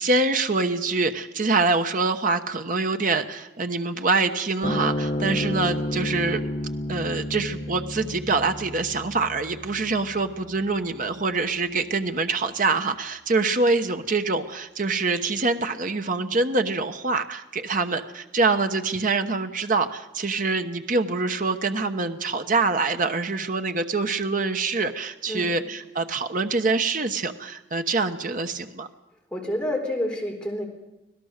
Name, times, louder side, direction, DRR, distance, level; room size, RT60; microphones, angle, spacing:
voice 1, 0.0-6.5 6.9-28.9, right 3 dB, 50° right, 7 dB, 1.1 m, -25 dB
sound 1, 4.6-11.3, left 1 dB, 40° left, 1.2 m, -31 dB
voice 2, 25.3-25.6 29.3-30.7, left 1 dB, 5° left, 0 dB, 4.1 m, -28 dB
25.5 x 17.0 x 6.6 m, 0.95 s
head